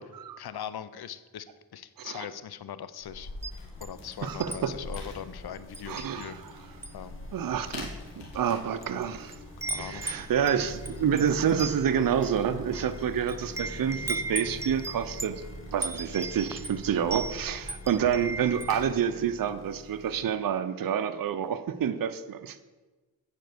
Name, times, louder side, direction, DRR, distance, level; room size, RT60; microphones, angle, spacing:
voice 1, 0.4-1.5 1.7-3.3 3.8-6.4 6.9-7.3 9.6-10.3, left 9 dB, 60° left, 14 dB, 0.6 m, -40 dB
sound 1, 3.0-18.9, left 2 dB, 85° left, 1.8 m, -46 dB
Wind chime, 3.3-4.6 4.9-5.2 5.7-6.5 6.8-7.1 7.8-7.9 8.6-9.0 9.3-18.8, right 2 dB, 5° right, 0.4 m, -37 dB
sound 2, 3.7-20.2, left 1 dB, 30° left, 1.7 m, -46 dB
voice 2, 4.2-4.7 5.9-6.4 7.3-7.9 8.2-9.4 9.7-15.4 15.7-22.6, right 8 dB, 50° right, 11 dB, 0.7 m, -28 dB
9.1 x 4.6 x 6.6 m, 1.2 s
cardioid pair, 45°, 44 cm